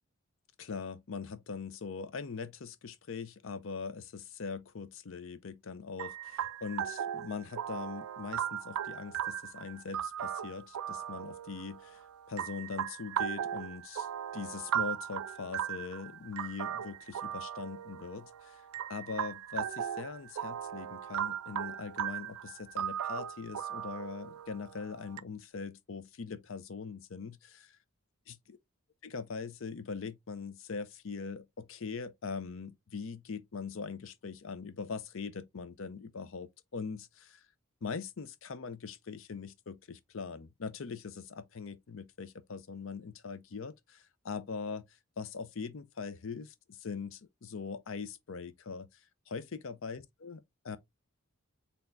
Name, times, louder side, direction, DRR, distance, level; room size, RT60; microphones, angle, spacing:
voice 1, 0.6-12.0 12.3-14.1 14.3-18.6 18.9-27.7 28.3-28.6 29.0-37.4 37.8-44.8 45.2-48.9 49.3-50.8, left 5 dB, 65° left, 0.5 m, -41 dB
sound 1, 6.0-25.2, right 10 dB, 85° right, 0.3 m, -38 dB
4.2 x 3.4 x 2.5 m
head